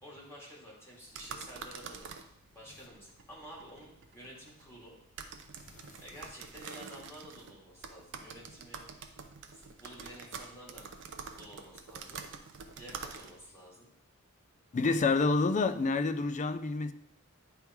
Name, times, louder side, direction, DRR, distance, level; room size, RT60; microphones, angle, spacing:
voice 1, 0.0-2.1 2.5-4.9 6.0-8.8 9.5-10.9 11.4-12.2 12.7-13.9, equal, 10° left, 2.5 m, -50 dB
sound 1, 1.0-13.5, right 5 dB, 60° right, 0.6 m, -47 dB
voice 2, 14.7-16.9, left 3 dB, 35° left, 0.4 m, -28 dB
9.7 x 3.6 x 4.5 m
head